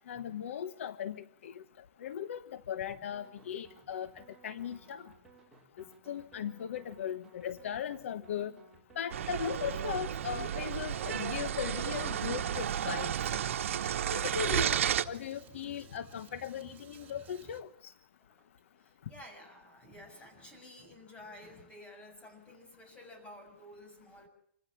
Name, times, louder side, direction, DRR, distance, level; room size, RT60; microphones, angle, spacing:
voice 1, 0.1-1.6 2.0-5.1 6.1-8.5 8.9-13.2 14.1-14.8 15.1-17.9, left 9 dB, 80° left, 13 dB, 1.1 m, -38 dB
sound 1, 3.1-10.7, right 3 dB, 5° right, 5.4 m, -60 dB
sound 2, 9.1-15.0, right 9 dB, 85° right, 1.1 m, -32 dB
sound 3, 12.4-17.6, right 8 dB, 25° right, 3.7 m, -56 dB
voice 2, 18.2-24.3, left 1 dB, 15° left, 5 dB, 6.7 m, -53 dB
26.5 x 16.0 x 7.1 m, 0.63 s
hypercardioid pair, 145°, 7 cm